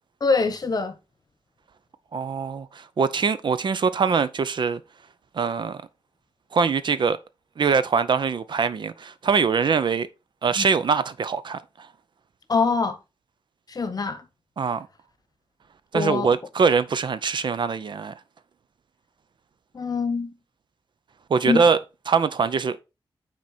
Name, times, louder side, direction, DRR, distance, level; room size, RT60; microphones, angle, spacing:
voice 1, 0.2-1.0 10.5-10.7 12.5-13.0 13.7-14.3 15.9-16.4 19.7-20.3 21.4-21.6, left 4 dB, 45° left, 1.0 m, -24 dB
voice 2, 2.1-4.8 5.4-5.8 6.5-7.2 7.6-10.1 10.4-11.6 14.6-14.9 15.9-18.1 21.3-21.8 22.1-22.8, right 5 dB, 55° right, 0.5 m, -23 dB
6.0 x 4.4 x 4.3 m
wide cardioid pair, 115°, 9 cm